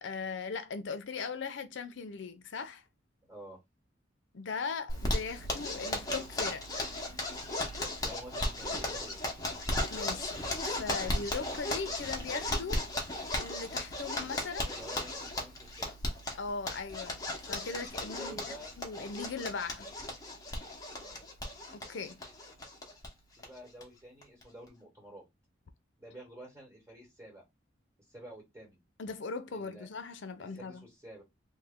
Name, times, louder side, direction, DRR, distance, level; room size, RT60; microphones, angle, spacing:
voice 1, 0.0-2.8 4.3-6.9 9.9-10.4 10.6-12.8 13.4-14.7 16.3-19.9 21.7-22.2 29.0-30.8, left 4 dB, 70° left, 0.5 m, -39 dB
voice 2, 3.3-3.6 8.0-9.2 14.7-16.2 18.1-18.8 20.9-21.2 23.4-25.2 26.0-27.4 28.1-28.8 29.5-29.9 30.4-31.2, right 1 dB, 15° right, 1.3 m, -50 dB
Zipper (clothing), 4.9-23.1 23.4-23.5 23.8-23.9 24.2-24.7, left 1 dB, 20° left, 0.8 m, -36 dB
3.1 x 2.1 x 3.5 m
head